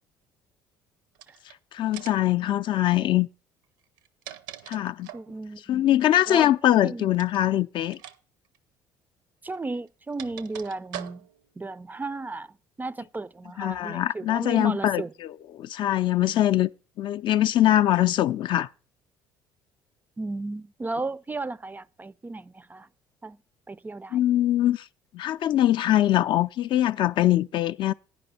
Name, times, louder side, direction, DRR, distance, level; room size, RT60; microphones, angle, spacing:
sound 1, 1.1-1.5 1.9-2.3 3.8-5.3 7.1-7.4 7.9-8.2 8.4-8.6 9.5-11.5, right 11 dB, 70° right, 0.6 m, -42 dB
voice 1, 1.7-3.3 4.7-5.1 5.7-8.0 13.6-16.7 17.0-18.7 24.1-24.8 25.1-27.9, left 13 dB, 50° left, 0.4 m, -23 dB
voice 2, 5.1-5.8 6.3-6.5 6.8-7.1 9.4-11.2 11.6-12.5 12.8-15.1 20.2-22.9 23.2-23.4 23.7-24.2, right 3 dB, 15° right, 0.4 m, -34 dB
9.9 x 5.3 x 6.8 m
figure-of-eight pair, 55°, 11 cm